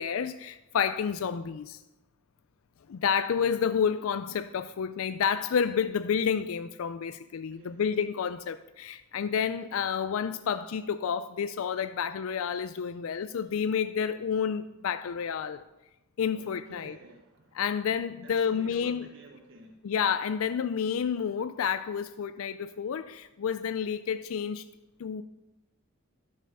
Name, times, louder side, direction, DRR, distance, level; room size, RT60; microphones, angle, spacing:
voice 1, 0.0-1.8 2.9-15.6 16.2-17.0 17.5-19.1 19.8-24.6 25.0-25.2, left 7 dB, 75° left, 0.4 m, -30 dB
voice 2, 7.5-7.8 16.3-17.7 18.2-19.8, right 2 dB, 60° right, 1.0 m, -51 dB
11.0 x 5.5 x 6.6 m
head